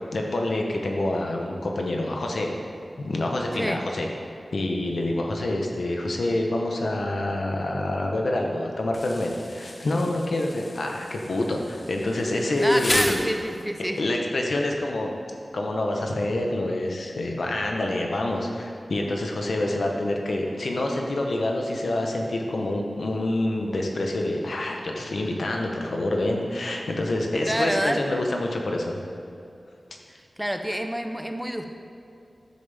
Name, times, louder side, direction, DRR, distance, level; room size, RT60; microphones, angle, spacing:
voice 1, 0.1-2.5 3.0-4.1 4.5-13.2 13.8-15.1 15.5-29.0, left 1 dB, 80° left, 1 dB, 1.0 m, -27 dB
Insect, 8.9-13.9, left 2 dB, 55° left, 0.9 m, -34 dB
voice 2, 12.6-14.0 27.5-28.0 30.1-31.7, equal, 5° right, 5 dB, 0.6 m, -28 dB
10.5 x 7.1 x 3.5 m, 2.6 s
wide cardioid pair, 60°, 0 cm